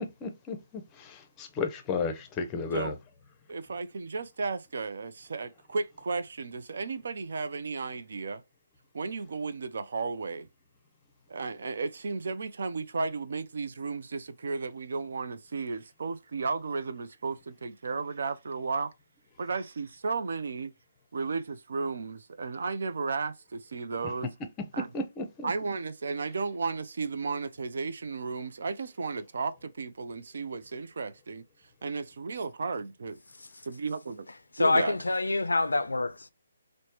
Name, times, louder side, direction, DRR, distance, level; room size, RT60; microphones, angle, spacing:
voice 1, 0.0-2.9 24.9-25.5, left 4 dB, 20° left, 0.6 m, -34 dB
voice 2, 3.5-8.4 8.9-10.5 11.3-18.9 19.4-20.7 21.1-24.3 24.7-24.9 25.4-31.4 31.8-33.2 33.6-34.3 34.6-35.0, right 4 dB, 60° right, 0.4 m, -34 dB
voice 3, 34.6-36.3, left 2 dB, 85° left, 0.4 m, -26 dB
3.1 x 2.1 x 2.8 m
figure-of-eight pair, 145°, 0 cm